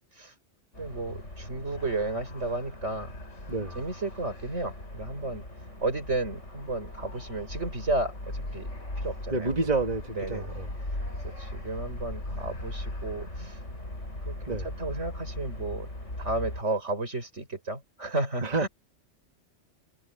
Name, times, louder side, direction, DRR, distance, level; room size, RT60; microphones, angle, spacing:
sound 1, 0.7-16.6, left 1 dB, 90° left, 7.2 m, -39 dB
voice 1, 0.8-3.1 3.7-5.4 5.8-8.7 9.0-9.5 10.2-10.5 11.2-13.6 14.2-15.9 16.2-18.7, right 2 dB, 75° right, 6.5 m, -33 dB
voice 2, 3.5-3.9 9.3-10.7 14.5-14.7 18.4-18.7, right 3 dB, 35° right, 1.9 m, -29 dB
omnidirectional pair, 1.2 m